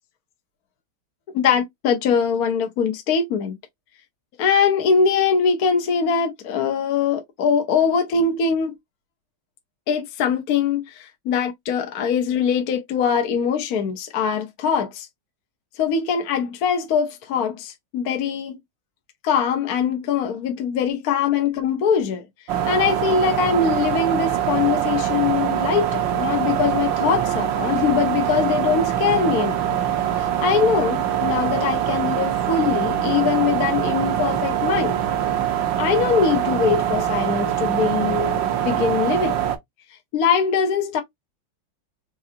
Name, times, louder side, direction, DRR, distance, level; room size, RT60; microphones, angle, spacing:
voice 1, 1.3-3.6 4.4-8.7 9.9-15.1 15.8-18.6 19.2-22.2 22.7-29.8 30.4-35.0 35.8-39.3 40.1-41.0, left 6 dB, 55° left, 1.2 m, -22 dB
sound 1, 22.5-39.6, right 10 dB, 70° right, 1.5 m, -23 dB
4.9 x 2.6 x 2.7 m
omnidirectional pair, 2.2 m